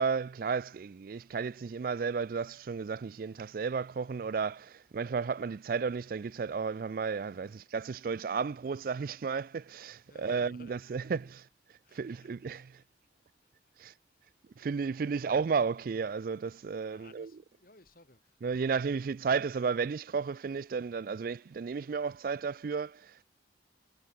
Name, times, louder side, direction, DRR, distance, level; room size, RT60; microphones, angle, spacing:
voice 1, 0.0-11.5 11.9-12.8 13.8-13.9 14.6-17.4 18.4-23.2, right 5 dB, 50° right, 0.3 m, -33 dB
voice 2, 10.1-11.3 11.8-12.6 13.4-13.7 15.0-15.1 16.9-18.4 18.8-19.0, left 2 dB, 50° left, 5.3 m, -58 dB
head